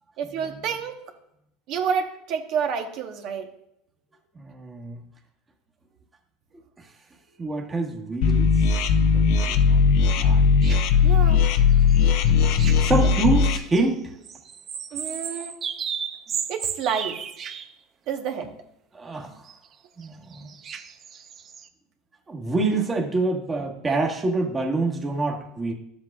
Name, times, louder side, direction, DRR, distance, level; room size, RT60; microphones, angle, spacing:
voice 1, 0.2-1.0 1.7-3.5 11.0-11.4 14.9-15.6 16.5-17.2 18.1-18.5, right 7 dB, 60° right, 6 dB, 1.0 m, -29 dB
voice 2, 4.3-5.0 7.4-8.5 9.0-9.8 10.2-10.5 12.8-14.1 18.9-19.3 20.0-20.5 22.3-25.7, right 3 dB, 20° right, 1 dB, 1.4 m, -26 dB
sound 1, 8.2-13.6, left 6 dB, 65° left, 0.6 m, -18 dB
sound 2, 10.6-10.8 11.7-13.9 14.2-17.7 19.5-19.6 20.0-20.1 20.3-21.7, right 7 dB, 40° right, 0.6 m, -35 dB
12.0 x 7.6 x 2.4 m, 0.77 s
supercardioid pair, 110°, 0 cm